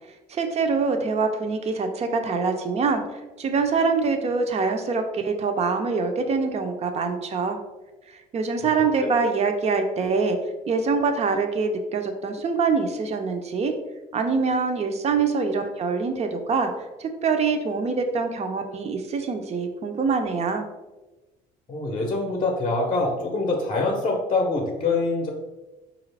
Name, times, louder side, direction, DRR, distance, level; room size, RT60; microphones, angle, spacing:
voice 1, 0.3-7.6 8.1-10.4 10.7-13.7 14.1-16.7 17.0-20.7, right 4 dB, 40° right, 6 dB, 0.5 m, -24 dB
voice 2, 21.7-25.3, left 3 dB, 35° left, 0 dB, 0.7 m, -24 dB
4.4 x 2.5 x 3.2 m, 1.1 s
cardioid pair, 110°, 17 cm